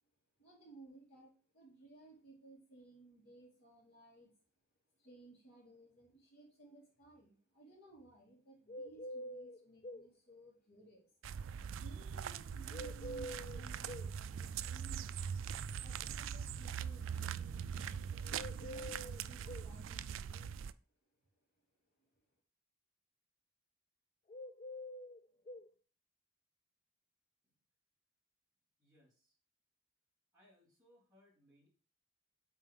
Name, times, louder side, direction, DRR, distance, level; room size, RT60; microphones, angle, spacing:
voice 1, 0.4-4.3 5.0-11.1 11.7-15.3 15.8-20.7, right 2 dB, 60° left, -9 dB, 2.6 m, -59 dB
sound 1, 8.7-10.1 12.7-14.1 18.3-19.7 24.3-25.7, left 1 dB, 30° left, 0.3 m, -46 dB
sound 2, 11.2-20.7, right 7 dB, 70° right, 0.3 m, -42 dB
voice 2, 28.8-29.3 30.3-31.7, left 1 dB, 20° right, -7 dB, 3.2 m, -68 dB
8.7 x 3.8 x 3.7 m, 0.40 s
head